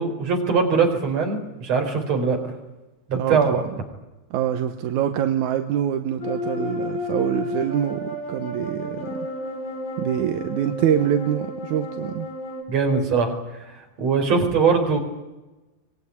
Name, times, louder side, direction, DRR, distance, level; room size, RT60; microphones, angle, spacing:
voice 1, 0.0-2.5 3.1-3.6 12.7-13.3 14.0-15.0, right 5 dB, 60° right, 4 dB, 5.3 m, -21 dB
voice 2, 3.2-3.7 4.3-9.2 10.0-12.3, right 10 dB, 85° right, 7 dB, 2.5 m, -25 dB
sound 1, 6.2-12.6, left 2 dB, 85° left, 5.6 m, -32 dB
24.0 x 19.5 x 9.7 m, 1.1 s
omnidirectional pair, 3.4 m